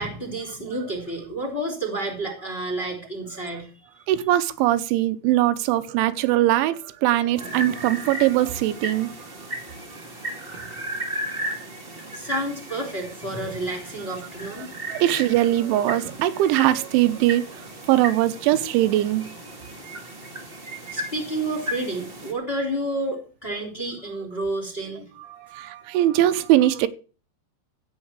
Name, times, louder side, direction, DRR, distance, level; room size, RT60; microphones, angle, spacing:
voice 1, 0.0-3.7 11.3-11.4 12.1-14.7 20.9-25.1, right 1 dB, 15° left, 2.9 m, -30 dB
voice 2, 4.1-9.1 14.9-19.3 25.3-26.9, right 14 dB, 90° right, 3.2 m, -21 dB
sound 1, 7.4-22.3, right 1 dB, 70° right, 0.5 m, -35 dB
15.5 x 5.7 x 8.0 m
omnidirectional pair, 5.3 m